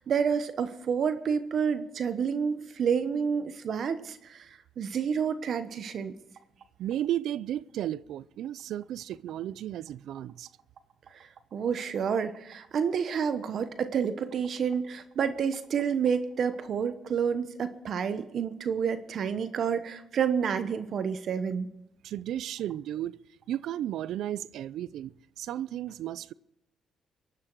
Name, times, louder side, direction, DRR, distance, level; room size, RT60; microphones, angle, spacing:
voice 1, 0.0-6.1 11.1-21.7, right 7 dB, 60° right, 1.0 m, -29 dB
voice 2, 6.8-10.5 22.0-23.2 23.5-26.3, right 12 dB, 80° right, 0.5 m, -34 dB
24.0 x 11.5 x 4.7 m
cardioid pair, 90°, 0 cm